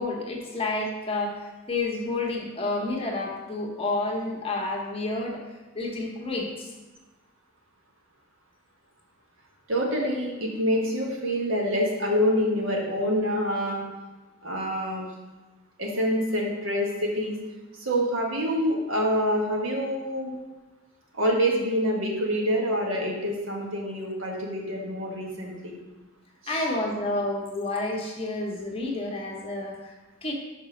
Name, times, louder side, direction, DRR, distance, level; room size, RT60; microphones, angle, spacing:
voice 1, 0.0-5.4 5.7-6.7 26.5-29.9 30.2-30.3, left 2 dB, 30° left, 0 dB, 1.1 m, -30 dB
voice 2, 9.7-13.8 14.4-15.1 15.8-17.4 17.8-20.3 21.1-25.8 26.4-26.6, equal, 90° right, -1 dB, 1.5 m, -26 dB
5.3 x 5.1 x 5.0 m, 1.2 s
head